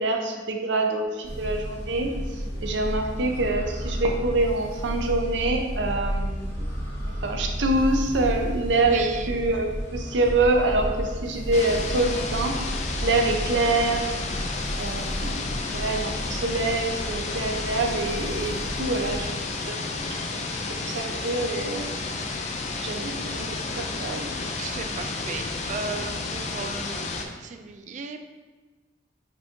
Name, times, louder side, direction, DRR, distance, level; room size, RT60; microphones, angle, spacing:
voice 1, 0.0-6.6 7.2-12.6 13.0-14.1 14.4-14.5 14.8-20.2 20.5-21.9 22.8-24.3, right 2 dB, 85° right, 3 dB, 0.6 m, -26 dB
sound 1, 1.2-19.2, equal, 70° left, 1.4 m, -32 dB
voice 2, 2.2-2.7 8.7-9.4 24.6-28.2, right 4 dB, 45° right, 7 dB, 0.3 m, -36 dB
sound 2, 11.5-27.3, left 3 dB, 40° left, 0.4 m, -31 dB
5.0 x 2.8 x 3.5 m, 1.3 s
head